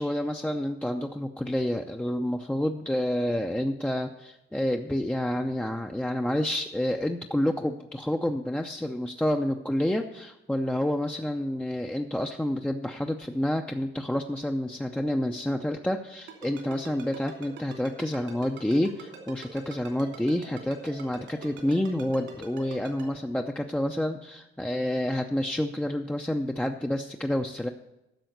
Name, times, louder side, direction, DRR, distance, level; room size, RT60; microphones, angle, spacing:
voice 1, 0.0-27.7, left 1 dB, 5° left, 3 dB, 0.6 m, -29 dB
Ringtone, 16.3-23.0, right 6 dB, 80° right, 2.9 m, -44 dB
10.5 x 6.3 x 7.9 m, 0.91 s
cardioid pair, 90°, 20 cm